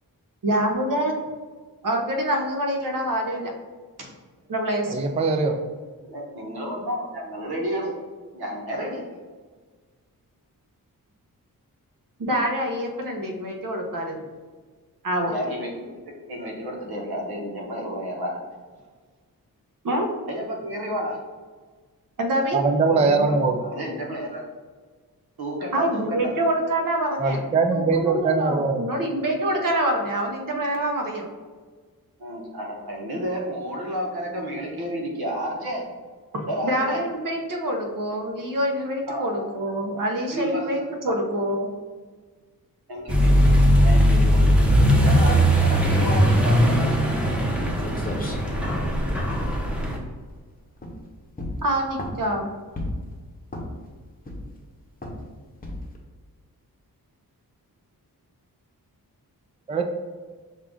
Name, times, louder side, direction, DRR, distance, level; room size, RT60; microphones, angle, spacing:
voice 1, 0.4-1.1 1.8-3.5 4.5-5.0 12.2-14.2 15.0-15.4 19.8-20.1 22.2-22.6 25.7-27.4 27.7-31.2 36.3-41.7 51.6-52.5, right 1 dB, 60° right, 2 dB, 0.9 m, -26 dB
voice 2, 4.9-5.6 22.5-23.6 27.2-28.9 59.7-59.8, right 4 dB, 20° right, 4 dB, 0.3 m, -21 dB
voice 3, 6.1-7.9 8.3-9.0 15.3-18.4 20.3-21.2 22.8-23.3 23.6-24.4 25.4-26.3 28.5-28.6 32.2-35.8 36.5-37.0 39.1-39.5 40.3-41.3 42.9-46.7, equal, 80° right, -1 dB, 1.1 m, -31 dB
Accelerating revving vroom, 43.1-50.0, equal, 5° right, 0.8 m, -19 dB
sound 1, 47.8-50.4 50.8-51.0 51.4-52.3 52.8-53.1 53.5-53.9 54.2-54.6 55.0-55.2 55.6-56.0, left 1 dB, 25° left, 0.8 m, -34 dB
5.6 x 2.4 x 3.6 m, 1.5 s
wide cardioid pair, 100°, 37 cm